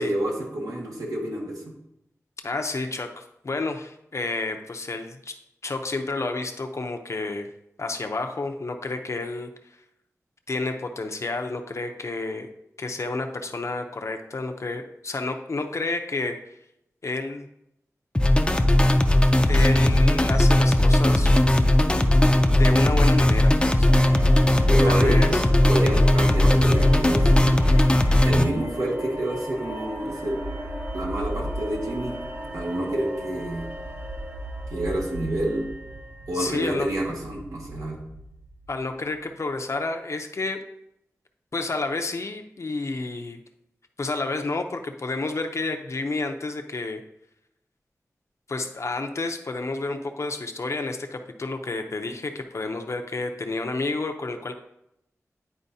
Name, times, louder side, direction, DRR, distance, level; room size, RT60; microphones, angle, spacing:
voice 1, 0.0-1.7 24.7-27.6 28.2-30.4 30.9-32.2 32.5-33.7 34.7-35.7 36.3-38.0, right 1 dB, 80° right, -2 dB, 1.7 m, -28 dB
voice 2, 2.4-5.4 5.6-7.5 7.8-9.5 10.5-12.5 12.8-16.4 17.0-17.5 19.5-21.3 22.5-24.1 24.8-25.4 36.3-36.9 38.7-40.6 41.5-43.4 44.0-47.0 48.5-54.5, left 3 dB, 55° left, 5 dB, 0.7 m, -30 dB
sound 1, 18.1-28.4, left 1 dB, 15° left, 0.5 m, -18 dB
sound 2, 23.9-39.1, equal, 40° right, 0.9 m, -35 dB
10.0 x 4.3 x 2.8 m, 0.81 s
wide cardioid pair, 75°, 6 cm